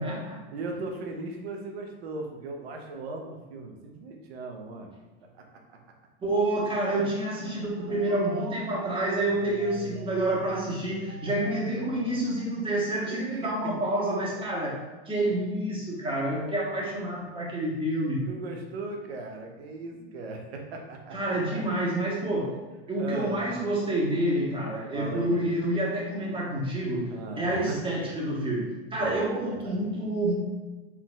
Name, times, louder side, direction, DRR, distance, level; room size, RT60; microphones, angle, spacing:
voice 1, 0.0-0.4 6.2-14.8 15.1-18.2 21.1-22.6 22.9-30.3, right 1 dB, 15° right, -4 dB, 1.4 m, -28 dB
voice 2, 0.5-4.9 5.2-5.4 7.9-8.3 13.1-13.7 18.3-21.6 23.0-23.4 24.9-25.4 27.1-28.0 29.0-29.8, right 3 dB, 90° right, 2 dB, 0.9 m, -38 dB
sound 1, 7.6-13.1, right 2 dB, 40° right, 0.4 m, -43 dB
4.4 x 4.0 x 2.4 m, 1.2 s
supercardioid pair, 115°, 31 cm